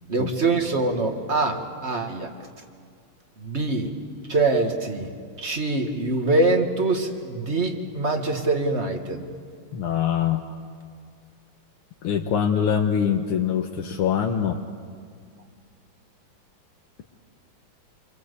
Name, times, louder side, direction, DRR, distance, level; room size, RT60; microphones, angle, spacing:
voice 1, 0.1-2.3 3.4-3.9 4.3-5.1 5.4-9.2, right 2 dB, 30° right, 4 dB, 2.1 m, -24 dB
voice 2, 9.7-10.4 12.0-14.6, left 8 dB, 90° left, 1 dB, 2.1 m, -23 dB
28.0 x 24.0 x 8.3 m, 2.1 s
omnidirectional pair, 2.4 m